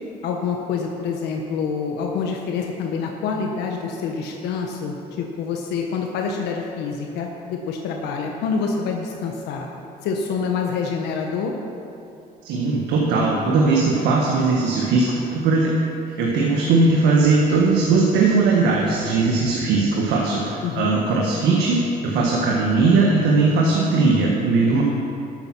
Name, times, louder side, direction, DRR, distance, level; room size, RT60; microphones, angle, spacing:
voice 1, 0.2-9.7 10.0-11.5 20.6-21.0, left 5 dB, 85° left, 1 dB, 1.2 m, -26 dB
voice 2, 12.4-15.7 16.2-24.8, right 3 dB, 85° right, -2 dB, 1.6 m, -19 dB
12.5 x 8.9 x 6.1 m, 2.7 s
cardioid pair, 110°, 17 cm